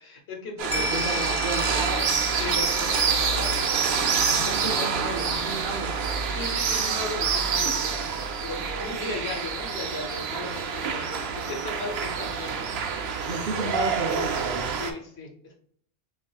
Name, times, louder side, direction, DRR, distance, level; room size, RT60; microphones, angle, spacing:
voice 1, 0.0-1.2 2.4-4.2 4.4-4.5 6.3-8.0 8.4-12.7 14.8-15.6, left 3 dB, 80° left, 2 dB, 1.3 m, -37 dB
sound 1, 0.6-14.9, right 6 dB, 85° right, 0.9 m, -27 dB
sound 2, 0.7-9.3 9.6-9.7, left 3 dB, 15° left, 0.6 m, -37 dB
voice 2, 0.7-2.2 4.5-6.3 7.6-7.8 10.8-11.0 13.3-14.8, right 3 dB, 60° right, 4 dB, 0.8 m, -33 dB
6.0 x 2.6 x 2.3 m, 0.63 s
omnidirectional pair, 1.0 m